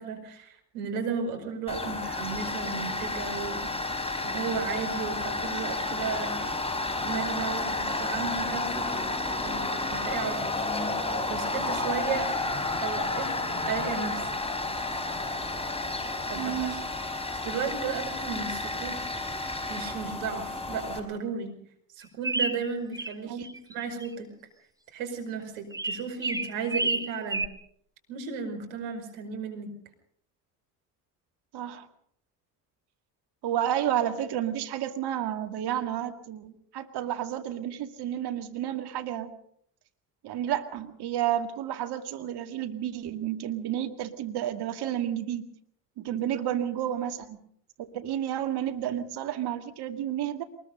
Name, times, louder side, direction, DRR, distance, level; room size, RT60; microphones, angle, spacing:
voice 1, 0.0-3.7 4.2-6.4 7.0-9.1 9.4-10.4 11.3-12.3 12.8-13.3 13.6-14.2 16.3-16.8 17.4-18.9 19.3-21.5 22.0-23.5 23.7-24.3 24.9-27.5 28.1-29.7 46.0-46.3, right 5 dB, 70° right, 4 dB, 5.3 m, -34 dB
Tools, 1.7-21.0, left 2 dB, 10° left, 5.1 m, -31 dB
voice 2, 16.4-16.9 23.3-23.5 31.5-31.9 33.4-39.3 40.2-45.5 46.0-47.4 47.8-50.4, right 11 dB, 55° right, 7 dB, 2.1 m, -31 dB
sound 1, 22.2-23.1 23.4-24.1 25.7-27.5, right 2 dB, 10° right, 1.9 m, -30 dB
23.0 x 21.0 x 5.4 m, 0.65 s
hypercardioid pair, 55°, 47 cm